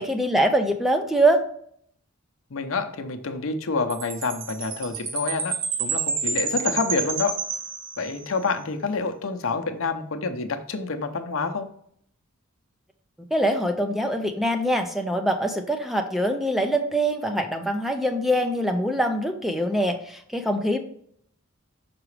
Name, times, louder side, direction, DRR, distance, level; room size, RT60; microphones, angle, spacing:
voice 1, 0.0-1.4 13.3-20.8, right 1 dB, ahead, 5 dB, 0.5 m, -23 dB
voice 2, 2.5-5.5 5.8-7.3 8.0-11.7, left 4 dB, 70° left, 6 dB, 0.7 m, -27 dB
Chime, 3.9-8.4, right 5 dB, 45° right, 0.7 m, -29 dB
6.0 x 4.8 x 3.2 m, 0.66 s
head